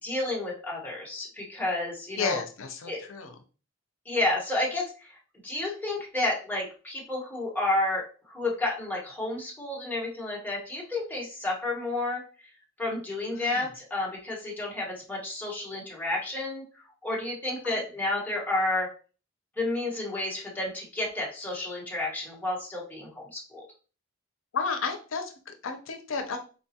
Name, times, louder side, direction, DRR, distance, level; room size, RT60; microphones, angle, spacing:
voice 1, 0.0-2.4 2.9-3.0 4.1-4.9 5.4-12.2 12.8-16.6 17.0-18.9 19.6-23.6, left 2 dB, 10° left, -3 dB, 1.1 m, -31 dB
voice 2, 2.2-3.4 13.3-13.7 17.6-17.9 24.5-26.4, left 5 dB, 90° left, 6 dB, 0.5 m, -33 dB
4.0 x 2.3 x 2.7 m, 0.36 s
head